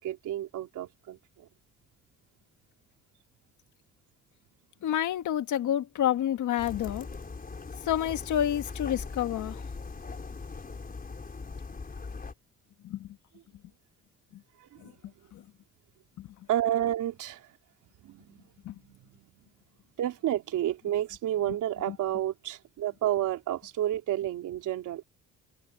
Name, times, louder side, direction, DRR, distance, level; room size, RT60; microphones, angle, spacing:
voice 1, 0.0-1.5 14.6-15.3 16.5-17.5 18.0-18.4 18.8-19.5 20.0-25.0, right 12 dB, 80° right, 3.7 m, -31 dB
voice 2, 4.8-7.1 7.8-9.6 12.8-13.1 14.8-14.9 15.3-15.4 16.2-16.3 18.6-18.8 21.9-22.0, left 11 dB, 75° left, 1.7 m, -29 dB
sound 1, 6.6-12.3, left 4 dB, 30° left, 4.7 m, -40 dB
cardioid pair, 90°, 30 cm